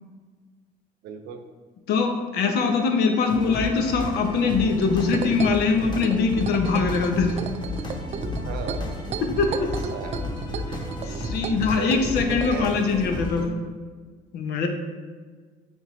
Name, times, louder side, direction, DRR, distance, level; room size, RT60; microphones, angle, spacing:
voice 1, 1.0-1.4 8.4-8.9 9.5-9.7 9.9-10.2 11.7-12.7, right 6 dB, 80° right, 6 dB, 0.7 m, -35 dB
voice 2, 1.9-7.4 9.2-9.5 11.1-13.6 14.3-14.7, left 4 dB, 75° left, 4 dB, 0.9 m, -22 dB
sound 1, 3.2-13.5, left 1 dB, 25° left, 1.1 m, -33 dB
sound 2, 4.7-12.6, right 6 dB, 40° right, 0.4 m, -35 dB
8.8 x 3.5 x 3.2 m, 1.5 s
cardioid pair, 110°, 17 cm